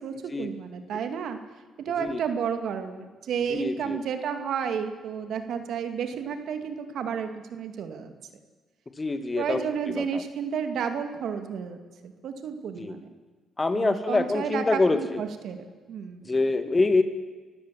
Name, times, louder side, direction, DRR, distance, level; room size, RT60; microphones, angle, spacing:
voice 1, 0.0-1.4 1.8-8.1 9.4-13.1 13.7-15.6 15.9-16.4, right 7 dB, 70° right, 7 dB, 2.3 m, -31 dB
voice 2, 3.5-4.0 9.0-9.6 9.9-10.2 12.8-13.0 13.6-15.2 16.3-17.0, left 3 dB, 25° left, 9 dB, 2.2 m, -25 dB
24.5 x 16.0 x 7.7 m, 1.4 s
cardioid pair, 90°, 0 cm